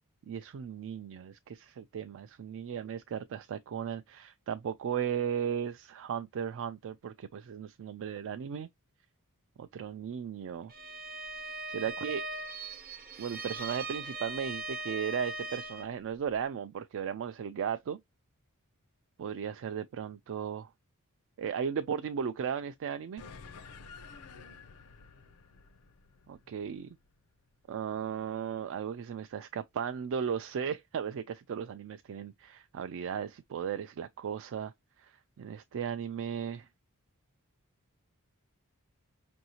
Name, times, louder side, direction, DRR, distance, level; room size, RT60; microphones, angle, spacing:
voice 1, 0.3-8.7 9.6-10.7 11.7-12.3 13.2-18.0 19.2-20.7 21.4-23.2 26.3-27.0 27.7-34.7 35.0-36.7, right 7 dB, 60° right, 0.3 m, -36 dB
Bowed string instrument, 10.7-16.0, right 2 dB, 40° right, 0.7 m, -40 dB
sound 1, 23.2-27.9, left 5 dB, 75° left, 0.5 m, -51 dB
5.4 x 2.6 x 2.8 m
head